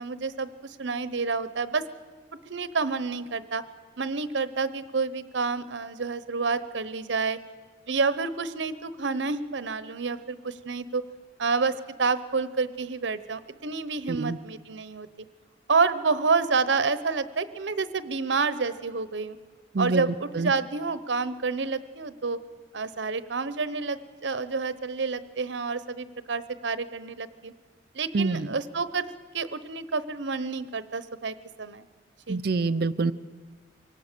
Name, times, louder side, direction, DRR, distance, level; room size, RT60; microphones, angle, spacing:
voice 1, 0.0-1.8 2.5-3.6 4.0-7.4 7.9-11.0 11.4-15.1 15.7-19.4 19.8-22.4 22.7-27.5 27.9-29.0 29.3-31.8 32.3-32.4, right 4 dB, 90° right, 14 dB, 0.9 m, -29 dB
voice 2, 19.7-20.5 28.1-28.5 32.3-33.1, right 3 dB, 55° right, 14 dB, 0.5 m, -26 dB
24.0 x 18.0 x 6.8 m, 1.4 s
head